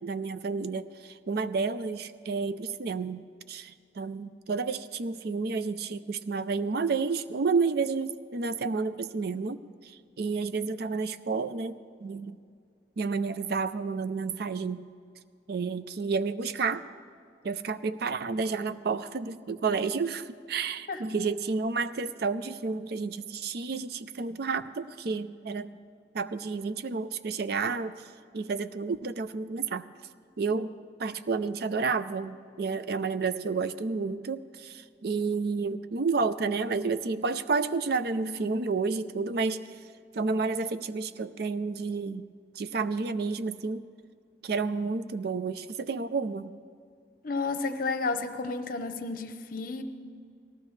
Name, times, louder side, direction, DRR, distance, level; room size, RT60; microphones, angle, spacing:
voice 1, 0.0-3.2 3.5-9.6 10.2-12.4 13.0-14.8 15.5-16.8 17.4-25.7 26.1-28.0 28.3-29.9 30.4-30.7 31.0-39.6 40.1-42.2 42.6-43.8 44.4-46.5, right 4 dB, 60° right, 12 dB, 0.5 m, -30 dB
voice 2, 47.2-49.8, left 3 dB, 50° left, 8 dB, 0.8 m, -31 dB
18.5 x 14.5 x 3.2 m, 2.2 s
head